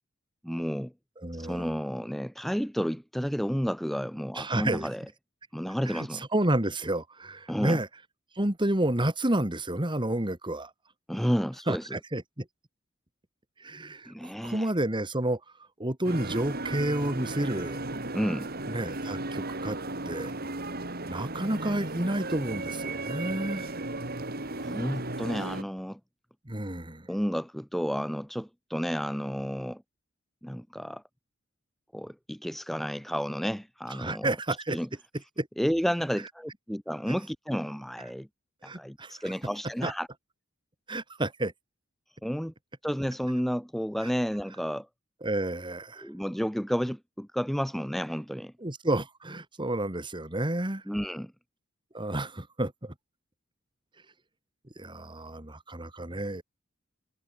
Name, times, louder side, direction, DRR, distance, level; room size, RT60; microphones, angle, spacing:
voice 1, 0.4-0.9 1.3-5.1 5.5-6.2 7.5-7.8 11.1-12.0 14.1-14.7 18.1-18.5 24.6-26.0 27.1-29.8 30.4-31.0 31.9-34.3 34.7-34.9 35.6-38.3 38.6-40.1 42.2-42.5 42.8-44.9 46.0-48.5 50.9-51.3, equal, ahead, 1.1 m, -31 dB
voice 2, 1.2-1.7 4.3-4.9 5.9-7.9 8.4-10.7 11.7-12.5 13.6-15.4 15.8-17.8 18.7-19.8 20.1-20.3 21.1-23.7 26.5-27.1 34.0-34.8 35.4-35.5 38.6-39.2 39.8-39.9 40.9-41.5 45.2-46.1 48.6-50.8 51.9-52.9 54.8-56.4, right 1 dB, 20° right, 2.2 m, -30 dB
sound 1, 16.0-25.6, right 2 dB, 45° right, 4.8 m, -35 dB
head